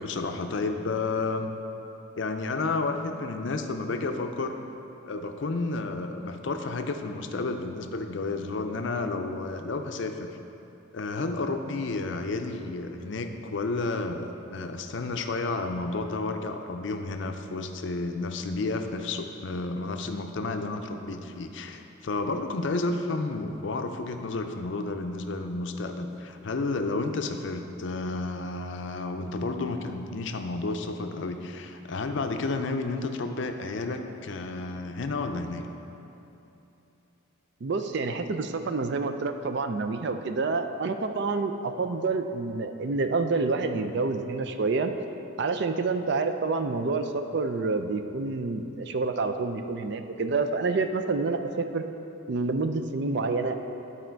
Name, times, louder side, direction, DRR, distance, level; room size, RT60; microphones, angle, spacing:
voice 1, 0.0-1.5 2.2-4.6 5.1-10.3 10.9-35.7, left 3 dB, 60° left, 6 dB, 0.5 m, -31 dB
voice 2, 37.6-44.9 45.4-51.8 52.3-53.6, right 3 dB, 55° right, 8 dB, 0.4 m, -28 dB
11.5 x 4.3 x 4.5 m, 2.9 s
head